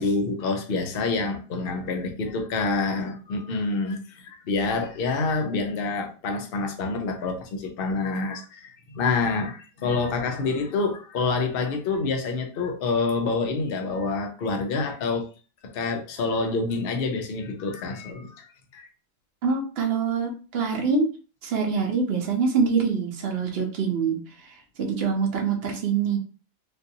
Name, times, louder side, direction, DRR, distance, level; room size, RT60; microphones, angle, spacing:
voice 1, 0.0-15.3 15.6-18.9, left 3 dB, 70° left, 4 dB, 0.5 m, -27 dB
voice 2, 19.4-21.1 21.4-24.2 24.8-26.2, right 5 dB, 45° right, 2 dB, 0.8 m, -24 dB
3.8 x 2.6 x 2.7 m, 0.36 s
omnidirectional pair, 1.8 m